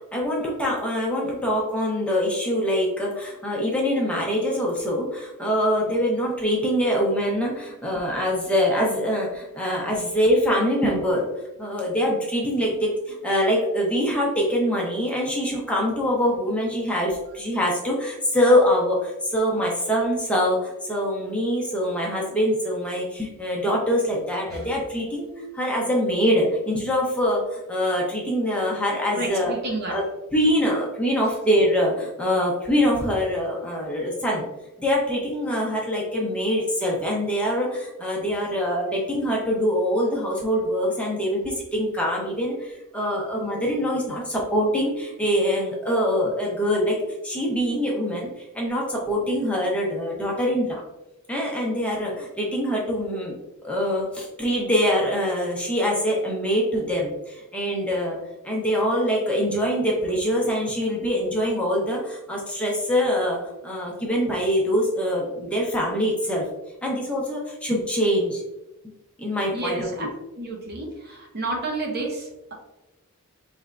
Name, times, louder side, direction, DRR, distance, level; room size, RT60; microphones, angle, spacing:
voice 1, 0.1-11.3 11.6-29.5 29.9-30.0 30.3-34.4 34.8-47.0 47.2-50.8 51.3-53.3 53.6-58.2 58.4-63.4 63.6-66.4 66.8-68.4 69.2-70.1, equal, 5° left, -3 dB, 0.7 m, -24 dB
voice 2, 29.1-30.0 69.5-70.1 70.3-72.5, right 2 dB, 45° right, 1 dB, 0.7 m, -30 dB
4.2 x 3.3 x 2.5 m, 0.98 s
head